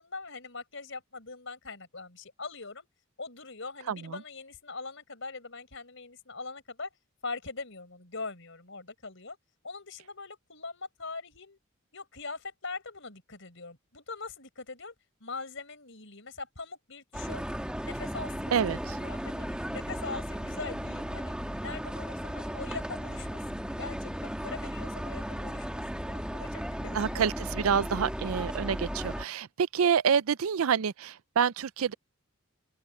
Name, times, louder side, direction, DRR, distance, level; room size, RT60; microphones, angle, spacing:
voice 1, 0.0-2.9 3.2-6.9 7.2-9.4 9.6-11.6 11.9-14.9 15.2-17.4 17.8-21.3 21.6-27.3, left 3 dB, 60° left, 6.0 m, -42 dB
voice 2, 3.9-4.2 18.5-19.0 26.9-31.9, right 7 dB, 85° right, 0.5 m, -27 dB
sound 1, 17.1-29.2, equal, 5° right, 1.6 m, -35 dB
open air
head